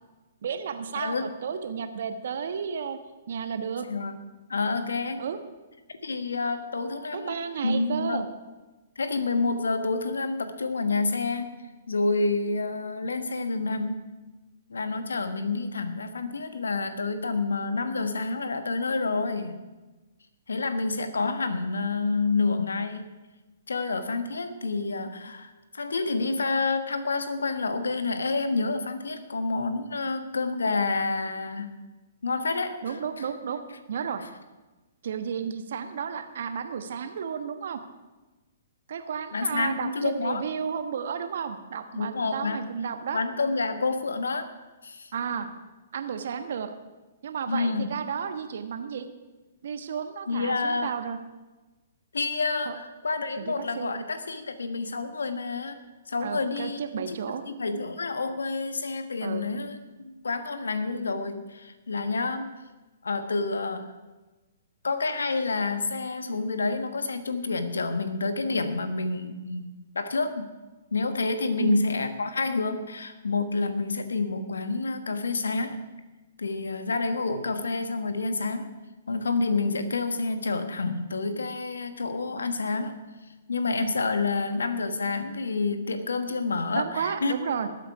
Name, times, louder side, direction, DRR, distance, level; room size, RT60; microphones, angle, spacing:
voice 1, 0.4-3.9 5.2-5.4 7.1-8.3 32.8-33.6 33.9-34.2 35.0-37.8 38.9-43.2 45.1-45.5 45.9-46.7 47.2-49.1 49.6-51.2 52.6-52.8 53.4-54.0 56.2-57.4 59.2-59.5 71.6-71.8 86.7-87.7, right 7 dB, 60° right, 8 dB, 1.3 m, -32 dB
voice 2, 0.9-1.3 3.9-4.2 4.5-5.2 6.0-7.4 7.6-8.2 9.0-11.5 11.9-14.1 14.7-19.6 20.5-23.2 23.7-31.8 32.2-33.0 39.3-40.4 41.9-42.7 43.1-44.5 44.8-45.1 47.5-47.9 50.3-50.9 52.1-55.8 56.1-56.8 57.1-59.8 60.0-62.5 63.0-63.9 64.8-70.5 70.9-75.8 76.4-78.8 79.1-83.0 83.5-87.4, left 3 dB, 80° left, 10 dB, 1.3 m, -28 dB
19.5 x 8.4 x 4.8 m, 1.2 s
figure-of-eight pair, 125°, 0 cm